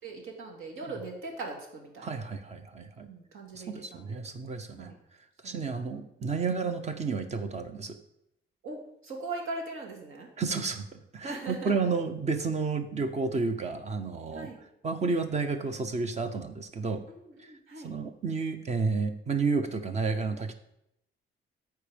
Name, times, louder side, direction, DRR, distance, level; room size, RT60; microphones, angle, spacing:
voice 1, 0.0-2.2 3.0-4.2 4.8-5.0 5.4-5.9 6.2-6.3 8.6-10.3 11.2-11.7 14.3-14.6 17.1-17.9, right 3 dB, 75° right, 0 dB, 2.4 m, -40 dB
voice 2, 2.0-3.1 3.5-4.9 5.4-8.0 10.4-14.5 14.8-17.0 17.4-17.5 17.8-20.5, right 4 dB, 30° right, 9 dB, 0.8 m, -31 dB
13.5 x 4.7 x 5.2 m, 0.80 s
wide cardioid pair, 170°, 21 cm